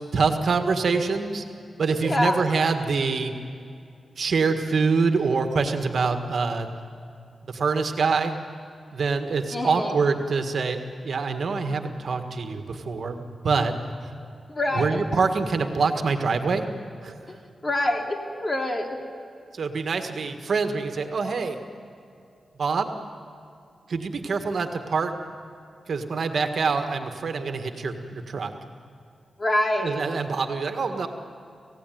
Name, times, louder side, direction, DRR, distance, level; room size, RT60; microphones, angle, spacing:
voice 1, 0.1-1.4 1.8-3.3 4.2-6.7 7.5-8.3 8.9-13.7 14.0-14.1 14.7-16.7 17.0-17.1 19.5-21.6 22.6-22.9 23.9-25.1 25.9-28.5 29.8-31.1, right 4 dB, 70° right, 6 dB, 1.7 m, -25 dB
voice 2, 2.0-2.4 9.5-10.0 14.5-14.9 17.3-17.4 17.6-19.0 29.4-30.0, left 1 dB, 35° left, 2 dB, 3.2 m, -25 dB
27.0 x 16.5 x 9.3 m, 2.5 s
cardioid pair, 60°, 0 cm